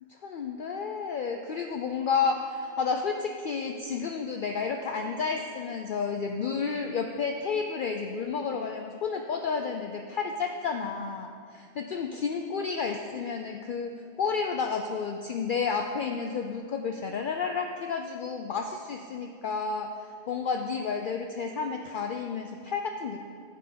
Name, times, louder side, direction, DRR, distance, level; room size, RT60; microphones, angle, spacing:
voice 1, 0.1-19.9 20.3-23.3, left 5 dB, 60° left, 4 dB, 0.6 m, -31 dB
9.3 x 5.6 x 6.6 m, 2.3 s
omnidirectional pair, 1.1 m